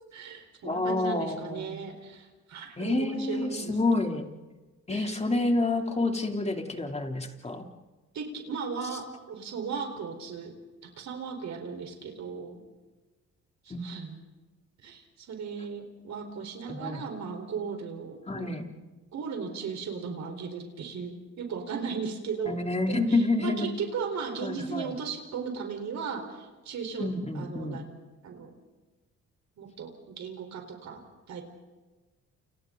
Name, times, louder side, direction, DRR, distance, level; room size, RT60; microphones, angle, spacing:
voice 1, 0.1-3.7 4.9-5.2 8.1-10.5 10.8-12.6 13.6-14.2 14.8-18.6 19.1-22.6 22.9-27.8 28.2-28.5 29.6-31.4, right 6 dB, 65° right, 4 dB, 4.5 m, -36 dB
voice 2, 0.6-1.8 2.8-4.3 4.9-7.6 13.7-14.0 16.7-17.0 18.3-18.6 22.4-23.8 24.4-24.9 27.0-27.8, left 2 dB, 20° left, 3 dB, 3.3 m, -28 dB
29.5 x 29.0 x 4.0 m, 1.2 s
cardioid pair, 90°, 30 cm